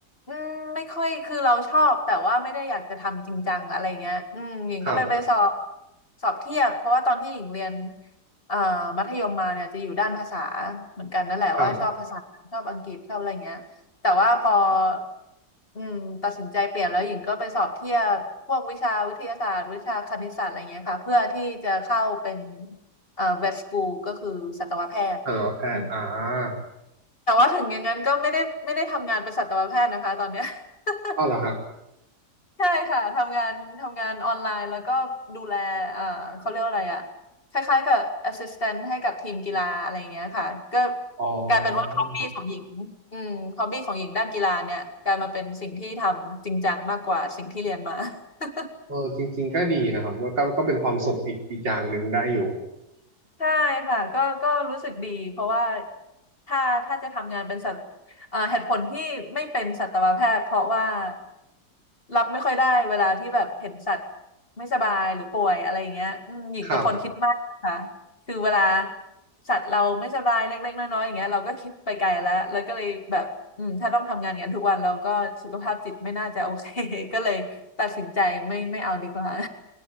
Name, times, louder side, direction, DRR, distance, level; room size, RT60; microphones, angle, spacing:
voice 1, 0.3-5.5 6.2-8.0 8.5-12.2 12.5-13.6 14.0-15.0 15.8-22.8 23.2-25.2 25.7-25.9 27.3-31.2 32.6-37.1 37.5-41.0 41.5-48.7 53.4-55.9 56.5-57.8 58.2-61.2 62.1-64.0 64.6-67.3 67.6-67.9 68.3-68.9 69.5-73.3 73.6-79.5, left 1 dB, 30° left, 6 dB, 2.4 m, -26 dB
voice 2, 25.3-26.6 31.2-31.6 41.2-41.7 48.9-52.6 66.6-66.9, right 2 dB, 85° right, 2 dB, 5.3 m, -26 dB
21.5 x 21.0 x 9.3 m, 0.86 s
omnidirectional pair, 1.9 m